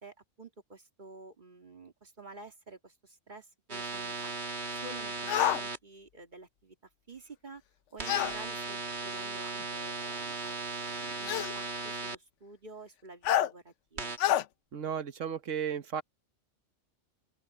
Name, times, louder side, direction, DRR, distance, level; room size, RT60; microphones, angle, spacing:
voice 1, 0.0-4.3 4.7-6.8 7.1-7.6 7.9-14.2, right 3 dB, 40° right, 2.2 m, -50 dB
sound 1, 3.7-5.8 8.0-12.1 14.0-14.2, right 3 dB, 60° right, 2.3 m, -37 dB
sound 2, 5.3-5.6 8.0-8.3 9.6-9.7 11.3-11.5 13.2-13.5 14.2-14.4, left 12 dB, 80° left, 0.9 m, -27 dB
voice 2, 14.7-16.0, right 8 dB, 85° right, 1.5 m, -34 dB
open air
omnidirectional pair, 1.3 m